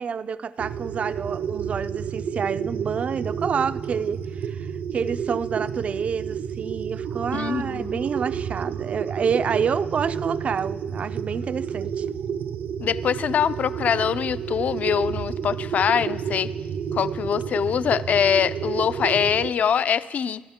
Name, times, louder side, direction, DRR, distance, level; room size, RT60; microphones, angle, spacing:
voice 1, 0.0-12.1, right 6 dB, 40° right, 0.4 m, -28 dB
sound 1, 0.6-19.5, right 7 dB, 75° right, 0.7 m, -30 dB
voice 2, 7.3-8.0 12.8-16.5 16.9-20.4, left 7 dB, 50° left, 0.5 m, -23 dB
28.0 x 12.0 x 3.6 m
wide cardioid pair, 160°, 3 cm